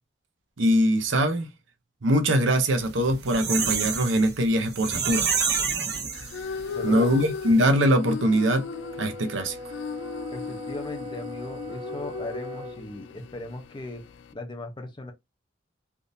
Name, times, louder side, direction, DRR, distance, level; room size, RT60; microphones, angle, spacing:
voice 1, 0.6-1.5 2.0-5.3 6.8-8.7 9.0-9.6, equal, 85° right, 0.7 m, -22 dB
sound 1, 2.9-6.7 7.1-7.2 7.5-7.6, right 6 dB, 55° right, 0.9 m, -28 dB
sound 2, 6.1-14.3, left 5 dB, 75° left, 0.3 m, -37 dB
voice 2, 6.7-7.3 10.3-14.0 14.3-15.1, left 2 dB, 25° left, 0.6 m, -37 dB
Brass instrument, 8.6-12.9, equal, 30° right, 0.3 m, -40 dB
3.5 x 2.6 x 2.6 m
head